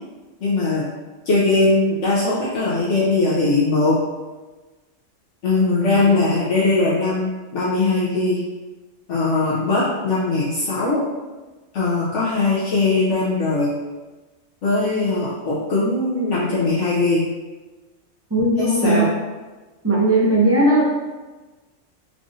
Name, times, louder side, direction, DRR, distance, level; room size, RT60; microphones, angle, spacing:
voice 1, 0.4-0.9 1.2-4.0 5.4-8.4 9.1-11.0 11.7-13.8 14.6-17.2 18.6-19.1, left 3 dB, 70° left, -7 dB, 1.0 m, -20 dB
voice 2, 5.8-6.5 18.3-19.0 19.8-20.8, right 1 dB, 20° right, -5 dB, 0.3 m, -18 dB
4.7 x 2.5 x 2.6 m, 1.2 s
omnidirectional pair, 1.3 m